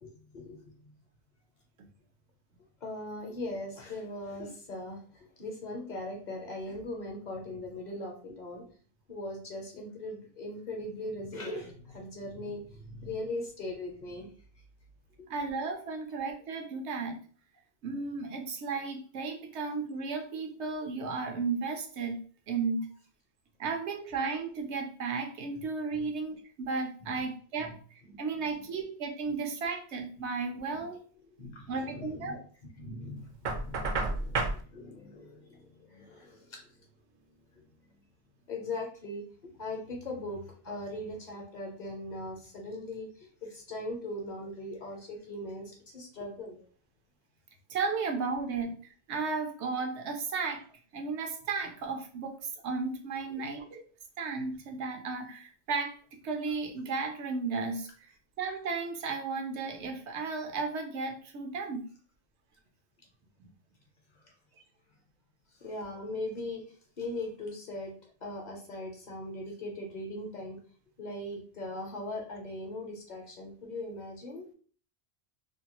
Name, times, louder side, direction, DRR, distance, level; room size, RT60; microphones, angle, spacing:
voice 1, 0.0-0.6 0.8-0.9 2.8-8.6 9.1-14.3 25.9-26.1 27.0-27.2 27.6-27.7 28.1-28.2 30.7-30.8 31.4-32.4 32.8-36.8 37.5-37.6 38.5-46.6 53.3-53.4 64.2-64.3 65.6-66.6 67.0-67.9 68.2-70.6 71.0-74.4, left 1 dB, 50° left, 0 dB, 0.7 m, -40 dB
voice 2, 15.3-17.2 17.8-22.2 22.5-22.9 23.6-31.0 31.7-32.4 47.7-50.6 50.9-52.4 52.6-53.8 54.2-56.0 56.2-57.9 58.4-61.8 63.4-63.5, right 4 dB, 80° right, 3 dB, 0.9 m, -34 dB
Knock, 33.4-34.6, right 3 dB, 60° right, 0.6 m, -30 dB
2.7 x 2.2 x 2.8 m, 0.44 s
omnidirectional pair, 1.1 m